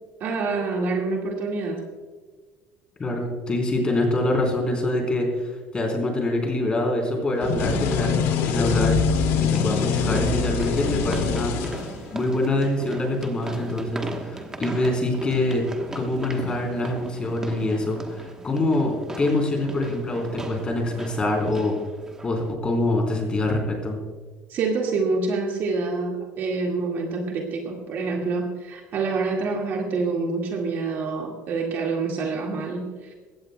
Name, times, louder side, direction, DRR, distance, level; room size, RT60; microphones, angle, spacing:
voice 1, 0.2-1.8 24.5-33.1, right 4 dB, 45° right, 0 dB, 1.9 m, -27 dB
voice 2, 3.0-9.0 9.3-11.9 12.1-15.6 15.9-21.8 22.2-24.0, left 2 dB, 20° left, 1 dB, 3.7 m, -25 dB
sound 1, 6.7-6.8 8.7-22.5, right 2 dB, 10° right, 1.1 m, -38 dB
sound 2, 7.4-12.3, left 6 dB, 75° left, 2.3 m, -24 dB
21.0 x 17.0 x 2.3 m, 1.4 s
cardioid pair, 165°, 5 cm